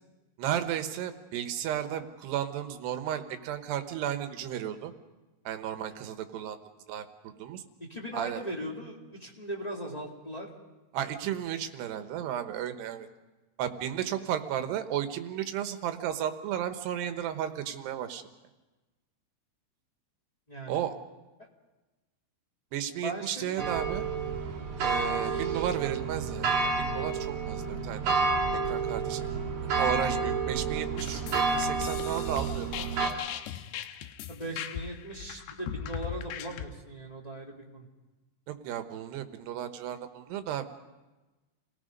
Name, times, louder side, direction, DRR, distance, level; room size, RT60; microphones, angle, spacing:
voice 1, 0.4-4.9 5.5-6.6 6.9-7.6 8.1-8.4 10.9-13.1 13.6-18.2 20.7-20.9 22.7-24.1 24.8-26.5 26.8-28.2 28.5-29.3 29.7-32.7 33.0-33.2 38.5-40.6, right 10 dB, 75° right, 8 dB, 3.2 m, -34 dB
voice 2, 7.8-10.5 20.5-20.8 21.4-21.5 23.0-23.8 25.1-25.4 29.2-29.4 34.3-37.9, right 1 dB, 15° left, -2 dB, 1.5 m, -39 dB
sound 1, 23.6-33.1, right 4 dB, 50° right, 3.3 m, -30 dB
sound 2, 31.0-36.7, left 10 dB, 80° left, 3.0 m, -39 dB
28.5 x 18.0 x 5.3 m, 1.1 s
omnidirectional pair, 4.9 m